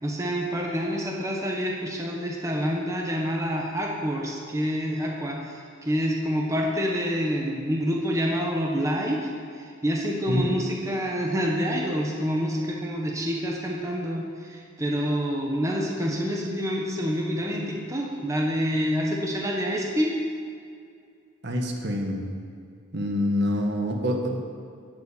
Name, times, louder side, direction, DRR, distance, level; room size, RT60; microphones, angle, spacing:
voice 1, 0.0-9.3 9.5-20.2, equal, 15° right, -1 dB, 1.4 m, -27 dB
voice 2, 21.4-22.3 22.9-24.4, equal, 50° right, 2 dB, 1.7 m, -26 dB
14.0 x 8.0 x 8.7 m, 2.3 s
head